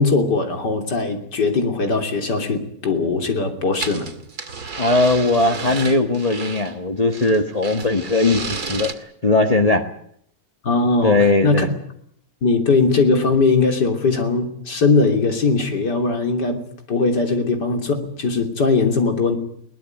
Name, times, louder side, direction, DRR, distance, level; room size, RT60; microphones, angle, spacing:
voice 1, 0.0-4.1 10.6-11.7 12.4-16.6 16.9-19.4, left 3 dB, 90° left, 5 dB, 3.7 m, -20 dB
sound 1, 3.7-6.7 7.1-8.9, right 4 dB, 70° right, 2.7 m, -31 dB
voice 2, 4.8-9.9 11.0-11.7, left 2 dB, 25° left, 4 dB, 1.5 m, -19 dB
22.0 x 19.0 x 9.2 m, 0.68 s
omnidirectional pair, 1.8 m